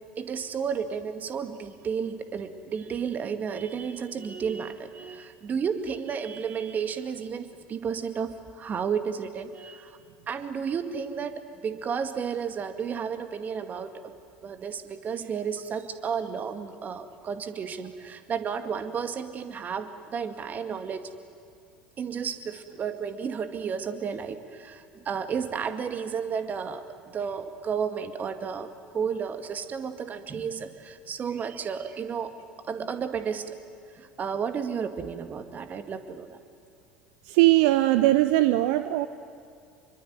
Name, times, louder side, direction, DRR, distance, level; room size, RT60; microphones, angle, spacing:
voice 1, 0.2-10.0 10.3-14.1 14.4-21.1 22.0-32.3 32.7-33.6 33.9-36.4, right 6 dB, 35° right, 9 dB, 2.2 m, -32 dB
voice 2, 37.3-39.1, right 16 dB, 65° right, 12 dB, 0.8 m, -20 dB
26.5 x 23.0 x 9.5 m, 2.4 s
figure-of-eight pair, 70°, 5 cm